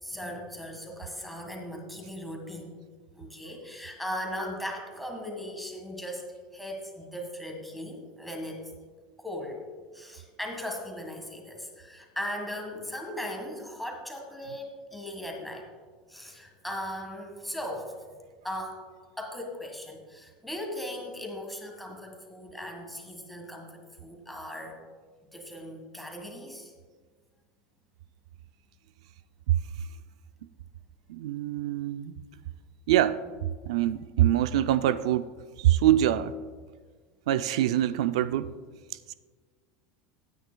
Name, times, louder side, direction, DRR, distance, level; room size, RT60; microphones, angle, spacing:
voice 1, 0.0-2.7 3.1-6.2 6.5-8.6 9.2-9.6 9.9-15.6 16.1-17.9 18.4-18.8 19.2-24.8 25.3-26.7, left 1 dB, ahead, 1.6 m, -38 dB
voice 2, 31.1-32.1 32.9-33.2 33.7-35.3 35.6-36.4 37.3-38.5 39.1-39.2, right 12 dB, 85° right, 0.3 m, -24 dB
17.0 x 9.4 x 2.3 m
supercardioid pair, 155°, 3 cm